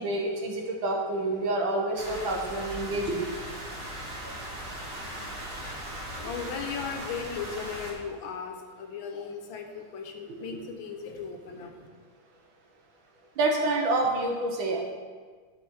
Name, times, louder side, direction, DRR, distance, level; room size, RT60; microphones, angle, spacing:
voice 1, 0.0-3.3 4.2-4.4 10.3-10.6 13.4-14.8, right 2 dB, 80° right, 1 dB, 2.0 m, -28 dB
sound 1, 1.9-7.9, right 1 dB, 55° right, 2.2 m, -38 dB
voice 2, 5.6-11.9, left 6 dB, 80° left, 4 dB, 1.7 m, -37 dB
12.0 x 5.1 x 4.6 m, 1.5 s
omnidirectional pair, 2.2 m